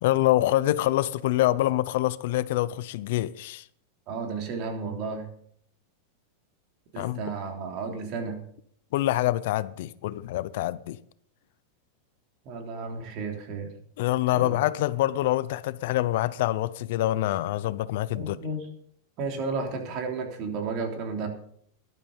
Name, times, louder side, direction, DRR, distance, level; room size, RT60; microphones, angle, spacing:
voice 1, 0.0-3.6 7.0-7.2 8.9-11.0 14.0-18.4, left 15 dB, 65° left, 0.6 m, -25 dB
voice 2, 4.1-5.3 6.9-8.4 12.4-13.7 14.3-14.6 18.1-18.7 19.2-21.3, right 4 dB, 45° right, 3.4 m, -33 dB
13.5 x 11.5 x 5.5 m
supercardioid pair, 145°, 0 cm